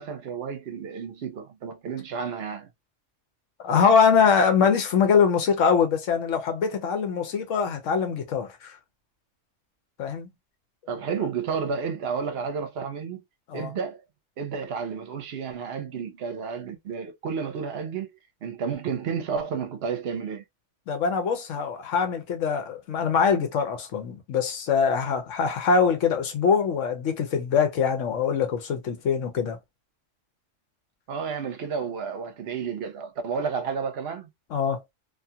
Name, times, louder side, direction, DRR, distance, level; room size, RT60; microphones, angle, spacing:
voice 1, 0.0-2.7 10.9-13.2 13.5-14.0 14.4-20.4 31.1-34.3, right 6 dB, 60° right, 0.9 m, -31 dB
voice 2, 3.6-8.7 10.0-10.3 13.5-13.7 20.9-29.6 34.5-34.8, left 6 dB, 85° left, 1.1 m, -23 dB
2.6 x 2.3 x 2.7 m
omnidirectional pair, 1.3 m